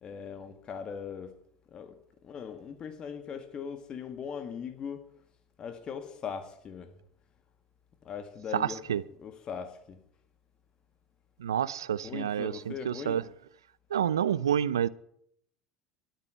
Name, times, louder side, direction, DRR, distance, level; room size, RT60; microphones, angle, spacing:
voice 1, 0.0-1.4 1.7-2.0 2.2-5.1 5.6-7.0 8.0-8.8 9.2-10.0 12.0-13.2, left 7 dB, 40° left, 1.8 m, -40 dB
voice 2, 8.5-9.0 11.4-13.2 13.9-14.9, right 9 dB, 85° right, 0.6 m, -28 dB
12.5 x 9.7 x 9.2 m
hypercardioid pair, 80°, 2 cm